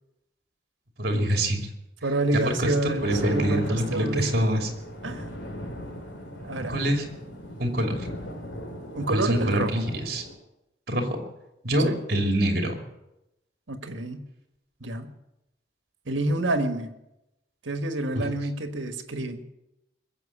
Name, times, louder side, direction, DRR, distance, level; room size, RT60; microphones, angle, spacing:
voice 1, 1.0-1.6 2.3-4.7 6.7-7.1 7.6-8.1 9.1-10.2 10.9-11.2 11.6-12.8 18.1-18.2, right 1 dB, 55° right, 3 dB, 2.9 m, -25 dB
voice 2, 2.0-4.3 5.0-5.3 6.4-6.7 8.9-9.8 11.8-12.0 13.7-14.2 14.8-15.1 16.1-16.9 17.6-19.4, right 2 dB, 90° right, 8 dB, 1.6 m, -28 dB
Thunder, 2.6-10.4, equal, 85° left, 3.4 m, -37 dB
21.0 x 7.9 x 8.6 m, 0.91 s
head